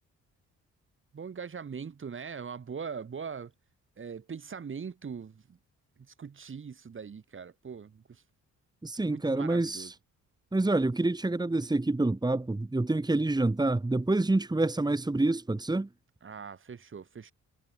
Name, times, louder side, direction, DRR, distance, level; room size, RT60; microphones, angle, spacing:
voice 1, 1.1-3.5 4.0-5.6 6.0-8.2 8.9-9.9 16.2-17.3, right 6 dB, 40° right, 5.4 m, -41 dB
voice 2, 8.8-9.9 10.5-15.9, right 2 dB, 15° right, 2.9 m, -27 dB
cardioid pair, 90°, 30 cm